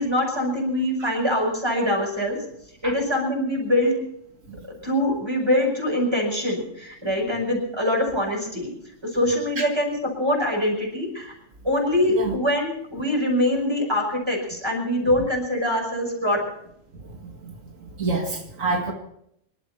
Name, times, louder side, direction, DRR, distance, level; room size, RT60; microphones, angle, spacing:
voice 1, 0.0-2.4 2.8-3.9 4.6-8.7 9.1-11.3 11.6-16.4, left 1 dB, 20° right, 1 dB, 5.7 m, -24 dB
voice 2, 18.0-18.9, right 3 dB, 85° right, 2 dB, 2.3 m, -26 dB
26.0 x 12.5 x 4.3 m, 0.73 s
omnidirectional pair, 1.3 m